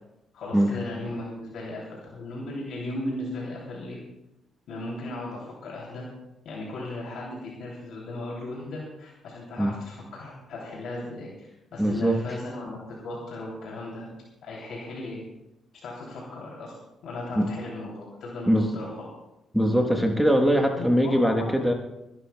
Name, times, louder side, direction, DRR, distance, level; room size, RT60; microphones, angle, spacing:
voice 1, 0.3-4.0 4.7-6.1 6.4-14.1 14.4-15.2 15.8-16.7 17.0-19.1 20.7-21.5, left 1 dB, 75° left, -3 dB, 2.8 m, -36 dB
voice 2, 11.8-12.2 17.4-17.5 18.5-18.7 19.5-21.7, equal, ahead, 3 dB, 1.1 m, -21 dB
30.0 x 11.5 x 2.2 m, 0.90 s
cardioid pair, 90°, 0 cm